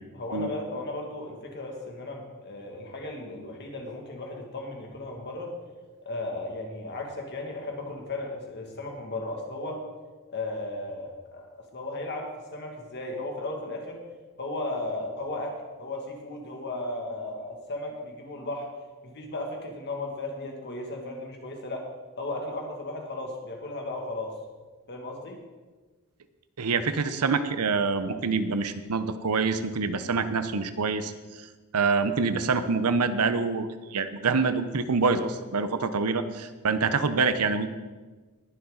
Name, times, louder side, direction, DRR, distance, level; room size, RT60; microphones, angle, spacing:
voice 1, 0.1-5.6 6.1-9.8 10.3-14.0 14.4-18.7 19.0-21.8 22.2-24.3 24.9-25.4, left 2 dB, 50° left, 1 dB, 2.1 m, -35 dB
voice 2, 26.6-31.1 31.4-31.5 31.7-37.7, right 4 dB, 85° right, 11 dB, 0.8 m, -26 dB
20.0 x 7.0 x 3.9 m, 1.3 s
head